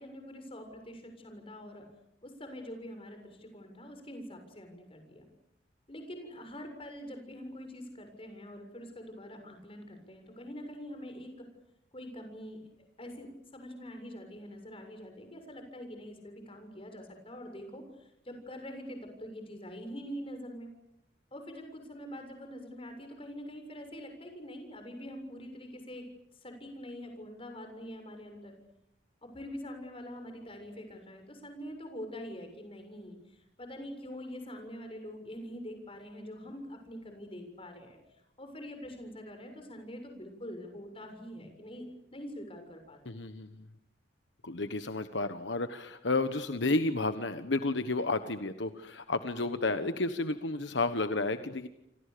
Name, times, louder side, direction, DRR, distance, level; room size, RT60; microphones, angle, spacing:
voice 1, 0.0-1.9 2.2-5.3 5.9-11.5 11.9-20.7 21.3-26.0 26.4-28.5 29.2-38.0 38.4-41.9 42.1-43.0, equal, 30° left, 6 dB, 7.1 m, -44 dB
voice 2, 43.0-43.7 44.4-51.7, left 2 dB, 70° left, 10 dB, 1.3 m, -31 dB
29.0 x 26.0 x 6.9 m, 0.82 s
head